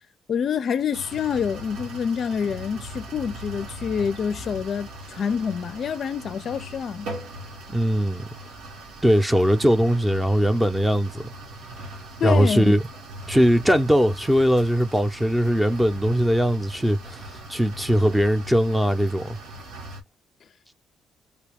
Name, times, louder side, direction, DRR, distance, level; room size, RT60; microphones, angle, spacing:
voice 1, 0.3-7.1 12.2-12.8, left 7 dB, 55° left, 0.4 m, -27 dB
sound 1, 0.9-20.0, right 1 dB, 85° right, 1.4 m, -40 dB
voice 2, 7.7-8.2 9.0-11.3 12.2-12.8 13.3-17.2 17.5-19.4, equal, 5° right, 0.7 m, -20 dB
3.8 x 2.3 x 3.5 m
cardioid pair, 90°, 0 cm